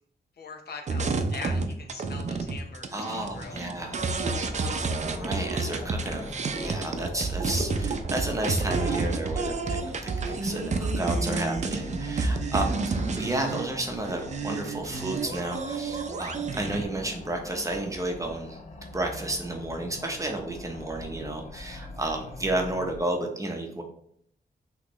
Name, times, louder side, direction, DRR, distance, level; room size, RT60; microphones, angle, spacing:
voice 1, 0.4-3.6, left 4 dB, 75° left, 3 dB, 0.8 m, -42 dB
sound 1, 0.9-13.6 14.1-16.8, right 3 dB, 45° right, 0.5 m, -30 dB
voice 2, 2.9-4.0 4.6-9.8 10.3-18.6 18.9-23.8, right 1 dB, 20° right, 2 dB, 0.8 m, -32 dB
sound 2, 3.2-23.0, left 2 dB, 40° left, 0.8 m, -43 dB
sound 3, 3.6-9.0, left 2 dB, 10° left, 1.3 m, -45 dB
5.7 x 3.0 x 3.1 m, 0.68 s
wide cardioid pair, 95°, 17 cm